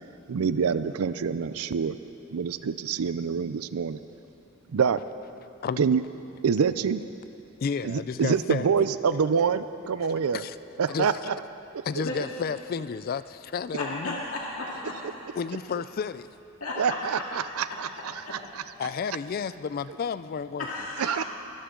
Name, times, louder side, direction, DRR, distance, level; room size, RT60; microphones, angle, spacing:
voice 1, 0.3-2.0 2.3-4.0 4.7-5.0 5.8-6.0 6.4-7.0 7.8-10.4 10.8-11.4 16.8-18.6 21.0-21.2, right 6 dB, 90° right, 13 dB, 0.5 m, -26 dB
voice 2, 7.6-8.7 10.3-10.6 10.9-11.1 11.8-14.2 15.3-16.3 18.8-20.7, left 6 dB, 45° left, 15 dB, 0.3 m, -31 dB
voice 3, 13.7-15.0 16.6-17.0 17.5-17.6 18.2-18.4 20.6-21.2, left 2 dB, 85° left, -4 dB, 2.1 m, -34 dB
23.5 x 14.0 x 3.8 m, 2.7 s
head